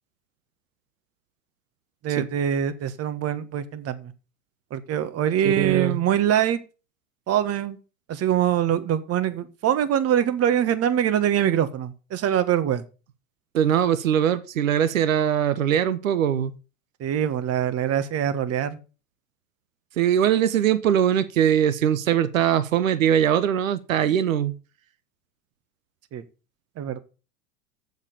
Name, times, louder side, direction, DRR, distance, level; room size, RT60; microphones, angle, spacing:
voice 1, 2.0-4.1 4.7-6.6 7.3-7.8 8.1-12.8 17.0-18.8 26.1-26.2 26.8-27.0, right 10 dB, 40° right, 1.4 m, -23 dB
voice 2, 5.4-6.0 13.5-16.5 20.0-24.5, right 9 dB, 85° right, 0.9 m, -21 dB
7.4 x 6.7 x 6.8 m
hypercardioid pair, 90°, 39 cm